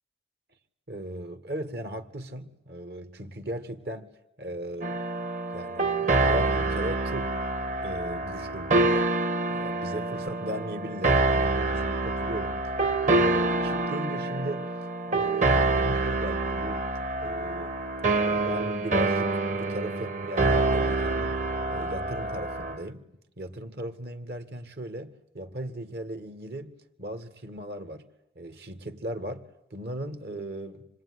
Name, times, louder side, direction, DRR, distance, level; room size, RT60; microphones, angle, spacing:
voice 1, 0.9-4.1 4.4-5.3 5.5-7.3 7.8-9.1 9.5-12.6 13.0-14.7 15.1-16.9 17.2-17.9 18.4-21.4 21.7-23.1 23.4-28.1 28.4-29.4 29.7-30.9, right 1 dB, 60° right, 2.2 m, -37 dB
sound 1, 4.8-22.8, right 2 dB, 45° right, 1.5 m, -26 dB
26.5 x 21.5 x 9.9 m
head